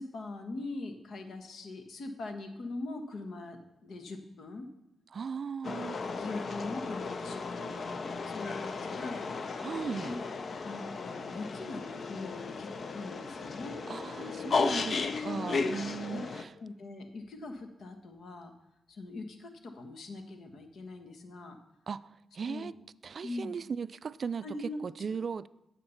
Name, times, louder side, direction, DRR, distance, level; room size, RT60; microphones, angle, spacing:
voice 1, 0.0-4.7 5.6-5.7 6.1-9.3 10.0-10.2 10.6-13.8 15.4-15.6 16.1-16.2 16.6-18.5 18.9-21.6 22.5-22.7 23.2-23.5 24.4-24.9, left 2 dB, 70° left, 1.3 m, -42 dB
voice 2, 5.1-6.0 9.6-10.2 13.9-16.5 21.9-22.7 23.0-25.5, right 6 dB, 50° right, 0.3 m, -37 dB
sound 1, 5.6-16.4, left 4 dB, 50° left, 0.6 m, -35 dB
9.8 x 7.3 x 5.6 m
cardioid pair, 90°, 0 cm